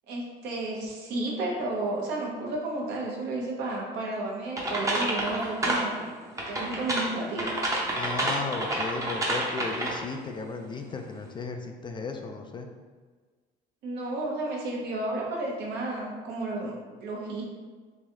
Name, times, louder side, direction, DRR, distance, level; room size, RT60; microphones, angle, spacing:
voice 1, 0.1-6.1 6.5-7.6 13.8-17.4, right 2 dB, 75° right, -2 dB, 0.9 m, -32 dB
sound 1, 4.6-5.9 6.4-10.1, right 1 dB, 20° right, 0.6 m, -29 dB
voice 2, 8.0-12.7, left 4 dB, 30° left, 4 dB, 0.3 m, -35 dB
3.1 x 2.7 x 3.6 m, 1.4 s
cardioid pair, 110°, 17 cm